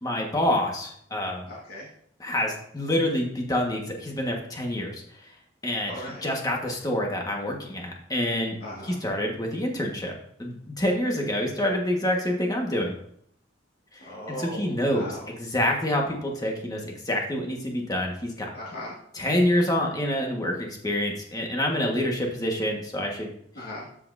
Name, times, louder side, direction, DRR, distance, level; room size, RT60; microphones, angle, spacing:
voice 1, 0.0-1.5 2.2-5.0 5.6-5.9 6.2-8.6 8.8-10.1 10.4-12.9 13.9-18.5 19.1-23.3, left 1 dB, 20° left, 0 dB, 1.6 m, -27 dB
voice 2, 1.5-1.9 5.8-6.3 8.6-9.0 14.0-15.3 18.5-19.0 23.6-23.9, equal, 55° left, -5 dB, 1.9 m, -38 dB
13.0 x 5.7 x 2.7 m, 0.68 s
head